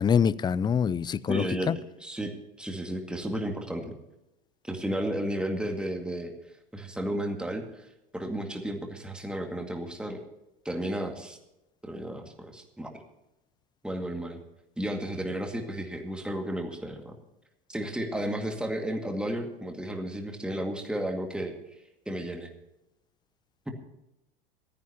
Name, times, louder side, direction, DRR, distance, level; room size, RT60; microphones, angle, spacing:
voice 1, 0.0-1.7, left 7 dB, 15° left, 0.4 m, -25 dB
voice 2, 1.3-3.9 4.6-6.3 6.7-7.9 8.1-10.2 10.6-11.4 11.8-12.9 13.8-14.4 14.8-17.2 17.7-21.5 22.1-22.5, right 1 dB, 5° right, 2.1 m, -33 dB
26.5 x 10.5 x 2.9 m
hypercardioid pair, 85°, 29 cm